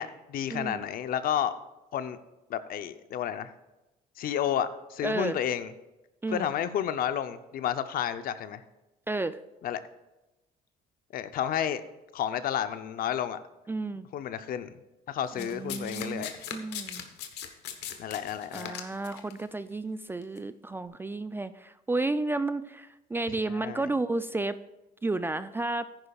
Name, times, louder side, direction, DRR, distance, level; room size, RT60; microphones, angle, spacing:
voice 1, 0.0-1.5 1.9-2.2 2.5-3.5 4.2-5.7 6.3-8.6 9.6-9.8 11.1-11.8 12.1-13.4 14.1-14.8 15.1-16.3 18.0-18.7 23.5-23.9, left 9 dB, 60° left, 11 dB, 0.7 m, -31 dB
voice 2, 0.5-0.9 5.0-5.4 6.2-6.5 9.1-9.4 13.7-14.1 15.4-17.0 18.5-24.6 25.0-25.9, right 2 dB, 15° right, 12 dB, 0.3 m, -32 dB
Domestic sounds home sounds, 15.4-19.3 20.2-20.4, left 10 dB, 85° left, 1.1 m, -39 dB
14.0 x 10.5 x 2.4 m, 1.0 s
cardioid pair, 110°, 17 cm